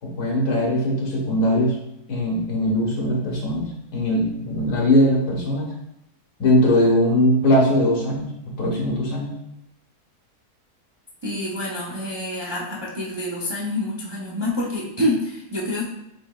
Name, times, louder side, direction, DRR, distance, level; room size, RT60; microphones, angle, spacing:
voice 1, 0.0-1.8 2.1-5.7 6.4-9.3, left 1 dB, 85° left, -2 dB, 1.8 m, -20 dB
voice 2, 11.2-15.8, left 1 dB, 30° right, -5 dB, 0.5 m, -27 dB
7.6 x 3.0 x 2.3 m, 0.82 s
omnidirectional pair, 1.7 m